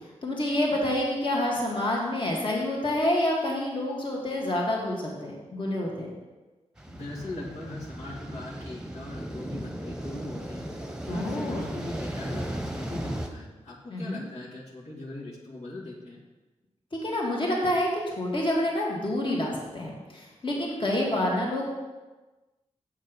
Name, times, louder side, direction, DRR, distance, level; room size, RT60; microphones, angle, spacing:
voice 1, 0.2-6.1 11.1-11.7 13.9-14.2 16.9-21.6, left 1 dB, 45° left, -3 dB, 2.3 m, -28 dB
sound 1, 6.8-13.3, right 1 dB, 5° right, 1.1 m, -36 dB
voice 2, 6.9-10.6 11.1-16.2, left 2 dB, 70° left, -6 dB, 2.1 m, -40 dB
7.5 x 7.3 x 5.3 m, 1.2 s
wide cardioid pair, 75°, 12 cm